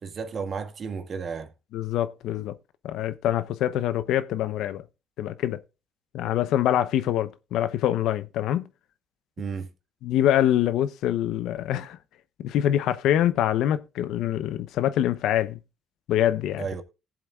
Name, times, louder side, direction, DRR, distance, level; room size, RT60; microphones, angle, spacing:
voice 1, 0.0-1.5 9.4-9.7 16.6-16.8, right 5 dB, 45° right, 1.7 m, -33 dB
voice 2, 1.7-2.5 2.8-4.8 5.2-5.6 6.1-8.7 10.0-12.0 12.4-15.6 16.1-16.7, left 11 dB, 75° left, 0.8 m, -25 dB
18.5 x 7.6 x 2.4 m
cardioid pair, 100°, 0 cm